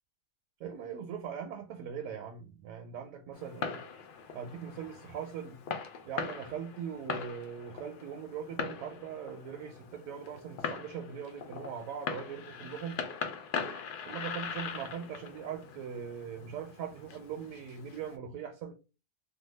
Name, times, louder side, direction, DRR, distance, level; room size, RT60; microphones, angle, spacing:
voice 1, 0.6-3.8 4.3-5.6 6.0-13.0 14.1-18.7, right 7 dB, 75° right, 0.9 m, -41 dB
Fireworks, 3.3-18.2, left 6 dB, 80° left, 0.4 m, -41 dB
2.7 x 2.2 x 3.2 m
omnidirectional pair, 1.5 m